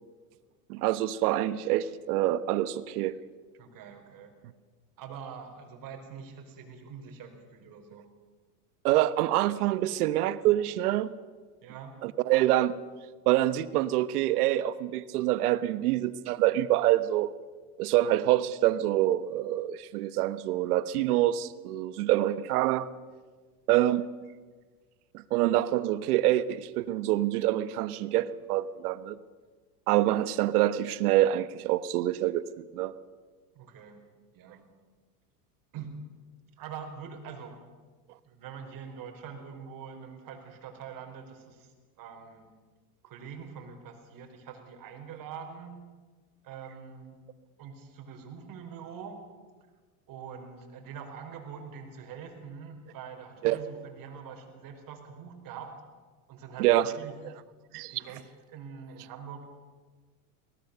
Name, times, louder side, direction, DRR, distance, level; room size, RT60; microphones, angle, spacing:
voice 1, 0.7-3.2 8.8-11.1 12.0-12.7 13.3-17.3 17.8-22.9 23.7-24.0 25.1-29.2 29.9-32.4 32.7-32.9 53.4-53.6 56.6-56.9 57.7-58.0, right 14 dB, 75° right, 15 dB, 1.2 m, -26 dB
voice 2, 3.6-4.3 5.0-8.1 11.6-12.0 33.5-34.0 34.3-34.6 35.7-36.0 36.6-37.6 38.2-41.7 42.0-42.5 43.0-45.8 46.4-47.2 47.6-49.2 50.1-55.7 56.3-57.1 57.9-58.2 58.5-59.4, right 7 dB, 45° right, 4 dB, 5.0 m, -44 dB
22.5 x 18.5 x 6.9 m, 1.4 s
supercardioid pair, 110°, 45 cm